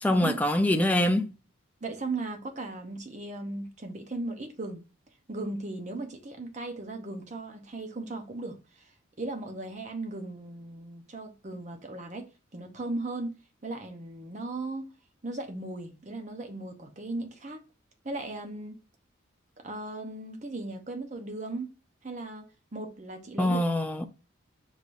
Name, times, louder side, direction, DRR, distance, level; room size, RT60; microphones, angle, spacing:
voice 1, 0.0-1.3 23.4-24.0, left 1 dB, 10° left, 0.4 m, -24 dB
voice 2, 1.8-4.8 5.3-8.9 9.2-12.3 12.5-13.3 13.6-14.9 15.2-17.6 18.0-18.8 19.6-21.7 22.0-22.4 22.7-23.7, right 2 dB, 35° right, 0.8 m, -37 dB
5.1 x 3.2 x 2.5 m
head